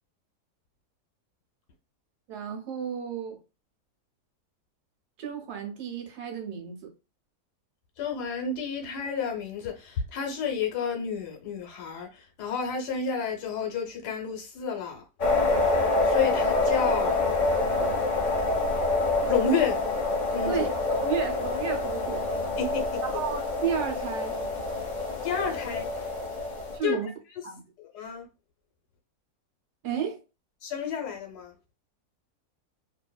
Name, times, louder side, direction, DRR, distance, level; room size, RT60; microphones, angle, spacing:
voice 1, 2.3-3.4 5.2-6.9 20.5-22.3 23.0-24.4 26.7-27.1 27.4-27.6 29.8-30.2, right 7 dB, 80° right, 1.3 m, -32 dB
voice 2, 8.0-15.0 16.0-17.2 19.3-19.8 20.3-20.5 22.6-23.0 25.2-25.9 26.8-27.0 27.8-28.3 30.6-31.5, left 6 dB, 80° left, 1.4 m, -30 dB
sound 1, 15.2-26.8, left 2 dB, 40° left, 0.7 m, -27 dB
2.9 x 2.6 x 2.2 m
omnidirectional pair, 1.7 m